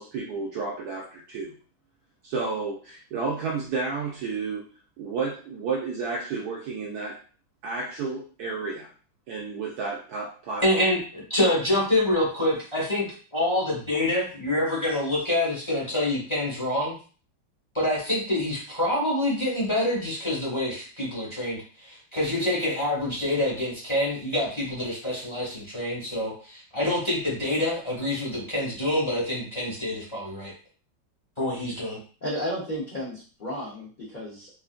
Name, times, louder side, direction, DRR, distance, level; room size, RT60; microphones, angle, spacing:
voice 1, 0.0-1.6 2.2-4.7 5.0-7.2 7.6-8.9 9.3-10.7, right 4 dB, 70° right, -2 dB, 0.9 m, -31 dB
voice 2, 10.6-17.0 17.7-30.5 31.4-32.0, left 1 dB, 20° left, -6 dB, 0.8 m, -26 dB
voice 3, 32.2-34.6, equal, 70° left, -7 dB, 0.4 m, -33 dB
3.6 x 2.5 x 2.4 m, 0.39 s
omnidirectional pair, 2.1 m